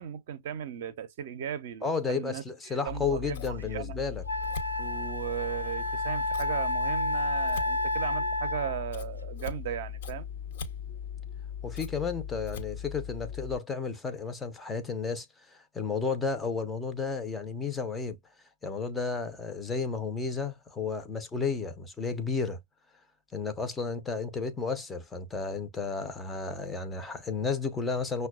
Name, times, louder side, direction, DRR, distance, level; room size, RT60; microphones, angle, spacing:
voice 1, 0.0-4.0 4.8-10.3, right 9 dB, 50° right, 0.6 m, -37 dB
voice 2, 1.8-4.2 11.6-15.3 15.5-18.2 18.6-22.6 23.3-28.3, left 5 dB, 10° left, 0.6 m, -32 dB
Scissors, 2.9-13.5, left 8 dB, 55° left, 0.8 m, -39 dB
Wind instrument woodwind instrument, 3.6-3.7 4.3-8.9, left 2 dB, 85° left, 0.5 m, -30 dB
5.8 x 2.2 x 2.3 m
figure-of-eight pair, 120°, 0 cm